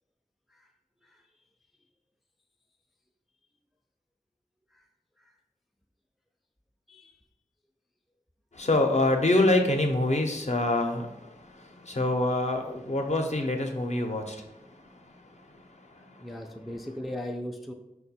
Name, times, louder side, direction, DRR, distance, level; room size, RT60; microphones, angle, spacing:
voice 1, 8.5-16.3, left 2 dB, 50° left, 3 dB, 0.6 m, -27 dB
voice 2, 16.2-17.7, left 1 dB, ahead, 3 dB, 0.3 m, -38 dB
4.4 x 2.2 x 4.1 m, 0.91 s
wide cardioid pair, 50°, 15 cm